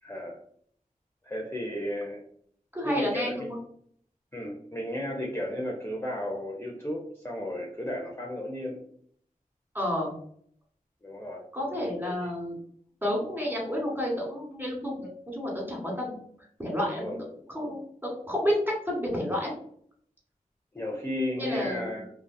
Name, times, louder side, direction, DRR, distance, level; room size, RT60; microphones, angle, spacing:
voice 1, 0.0-0.4 1.2-2.2 2.8-3.5 4.3-8.8 11.0-11.4 12.0-12.3 16.9-17.2 20.7-22.1, left 1 dB, 15° left, -2 dB, 0.4 m, -34 dB
voice 2, 2.7-3.6 9.7-10.1 11.5-12.5 13.0-16.2 16.6-17.1 17.5-19.5 21.4-21.9, equal, 15° right, -3 dB, 1.4 m, -30 dB
2.6 x 2.2 x 2.2 m, 0.64 s
cardioid pair, 45°, 15 cm